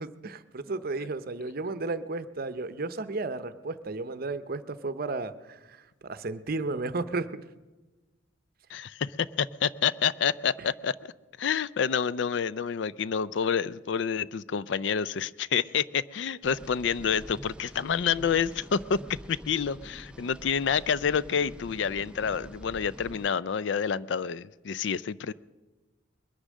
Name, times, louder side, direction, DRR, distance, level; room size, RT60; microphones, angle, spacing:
voice 1, 0.0-7.4, right 3 dB, 50° right, 13 dB, 0.7 m, -33 dB
voice 2, 8.7-11.1 11.4-19.0 19.3-25.3, left 7 dB, 60° left, 18 dB, 0.4 m, -28 dB
sound 1, 16.4-23.3, equal, 5° right, 0.4 m, -46 dB
21.5 x 10.0 x 6.3 m, 1.2 s
head